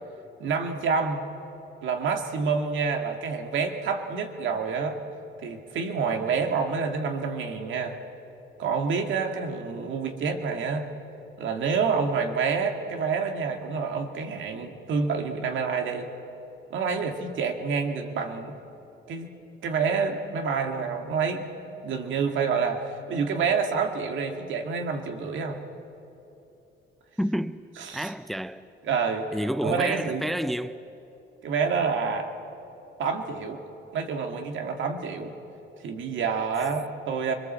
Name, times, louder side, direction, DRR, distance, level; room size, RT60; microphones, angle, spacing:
voice 1, 0.4-1.3 1.8-5.0 5.4-8.0 8.6-10.9 11.4-16.1 16.7-18.6 19.1-21.5 21.8-25.6 27.8-28.1 28.8-29.3 29.6-30.3 31.4-32.3 33.0-33.6 33.9-35.4 35.8-37.3, right 5 dB, 75° right, 2.2 m, -28 dB
voice 2, 27.2-27.6 27.9-28.7 29.3-30.8 36.6-36.7, equal, ahead, 0.6 m, -29 dB
25.5 x 22.0 x 7.6 m
cardioid pair, 90°, 20 cm